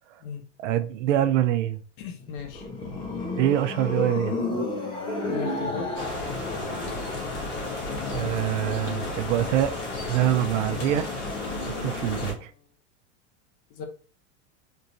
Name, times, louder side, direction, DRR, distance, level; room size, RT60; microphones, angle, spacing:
voice 1, 0.6-1.8 3.4-4.4 8.1-9.7 10.1-11.2 11.8-12.5, right 12 dB, 80° right, 0.5 m, -25 dB
voice 2, 2.0-2.7 5.2-5.9 11.8-12.0 13.7-13.8, left 6 dB, 45° left, 0.8 m, -36 dB
sound 1, 2.2-7.5, left 2 dB, 15° left, 0.3 m, -31 dB
Wind instrument woodwind instrument, 5.3-12.7, left 5 dB, 90° left, 1.4 m, -50 dB
sound 2, 5.9-12.3, left 3 dB, 75° left, 1.6 m, -32 dB
3.7 x 2.6 x 2.8 m
supercardioid pair, 155°, 37 cm